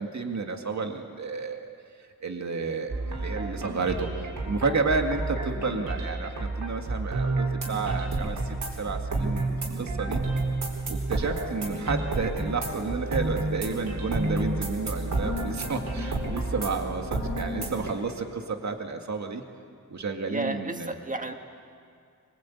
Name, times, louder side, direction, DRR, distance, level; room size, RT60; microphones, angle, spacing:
voice 1, 0.0-1.7 2.2-10.2 10.9-19.4 19.9-20.9, right 4 dB, 55° right, 4 dB, 2.1 m, -31 dB
sound 1, 2.9-17.9, right 2 dB, 70° right, 4.9 m, -30 dB
voice 2, 20.3-21.3, right 2 dB, 25° right, 5 dB, 1.6 m, -32 dB
24.0 x 23.0 x 8.5 m, 2.3 s
wide cardioid pair, 160°, 33 cm